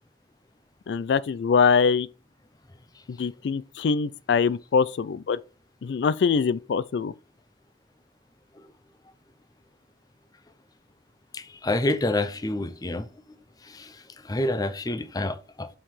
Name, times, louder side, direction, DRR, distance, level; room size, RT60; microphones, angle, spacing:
voice 1, 0.9-2.1 3.1-5.4 5.8-7.1, left 5 dB, 80° left, 0.4 m, -23 dB
voice 2, 11.3-13.1 13.6-15.7, left 2 dB, 20° left, 0.6 m, -28 dB
5.6 x 4.6 x 4.8 m
head